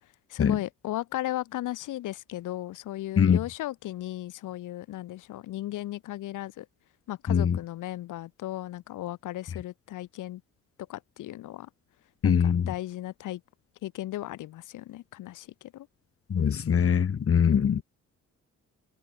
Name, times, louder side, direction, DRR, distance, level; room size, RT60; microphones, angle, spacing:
voice 1, 0.3-6.7 7.1-10.4 10.9-11.7 12.2-13.4 13.8-15.9 17.5-17.8, left 15 dB, 85° left, 5.3 m, -36 dB
voice 2, 12.2-12.7 16.3-17.8, left 7 dB, 45° left, 3.3 m, -22 dB
cardioid pair, 90°, 30 cm